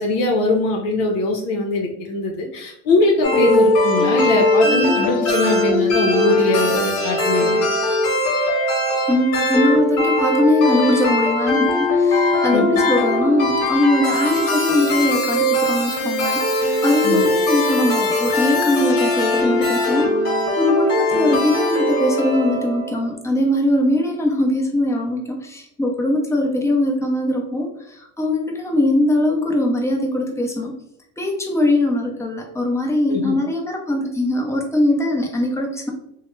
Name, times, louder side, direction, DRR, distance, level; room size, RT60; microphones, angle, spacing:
voice 1, 0.0-7.6 12.5-12.8 17.0-17.3 33.1-33.3, left 2 dB, 70° left, 0 dB, 0.7 m, -21 dB
sound 1, 3.2-23.1, left 1 dB, 55° left, 1.2 m, -20 dB
voice 2, 9.1-20.2 20.6-30.7 31.2-35.9, left 1 dB, 10° left, 0 dB, 0.7 m, -21 dB
3.1 x 2.1 x 3.1 m, 0.74 s
supercardioid pair, 90°, 37 cm